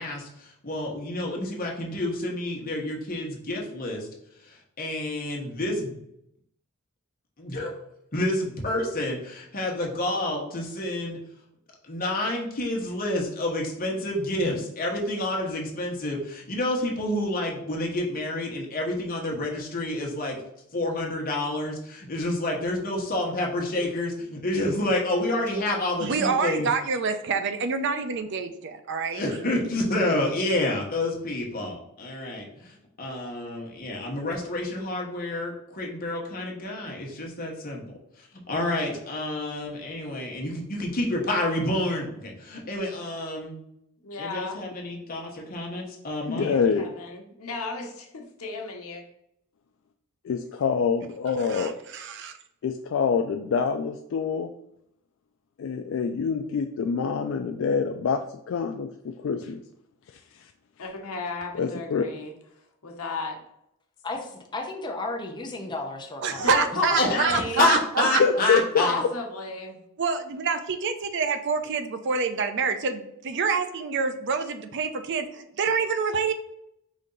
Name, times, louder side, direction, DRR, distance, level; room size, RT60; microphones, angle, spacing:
voice 1, 0.0-4.1 4.4-6.0 7.4-7.7 8.1-11.2 11.8-20.4 20.7-26.7 29.1-43.6 44.2-46.5 67.0-67.3 67.5-69.0, left 1 dB, 40° left, -1 dB, 1.1 m, -29 dB
voice 2, 26.0-29.2 51.5-52.3 66.2-68.2 70.0-76.3, right 5 dB, 55° right, 9 dB, 0.5 m, -27 dB
voice 3, 44.0-44.6 46.4-49.0 60.8-62.3 62.8-63.4 66.4-67.6 68.8-69.7, left 3 dB, 80° left, 1 dB, 1.0 m, -33 dB
voice 4, 46.3-46.9 50.2-51.8 52.6-54.5 55.6-58.2 58.5-59.6 60.1-60.5 61.6-62.1 68.2-68.6, left 5 dB, 60° left, 5 dB, 0.3 m, -26 dB
voice 5, 64.0-66.5 67.0-67.3, left 2 dB, 20° left, 1 dB, 0.6 m, -34 dB
5.1 x 2.7 x 3.8 m, 0.77 s
head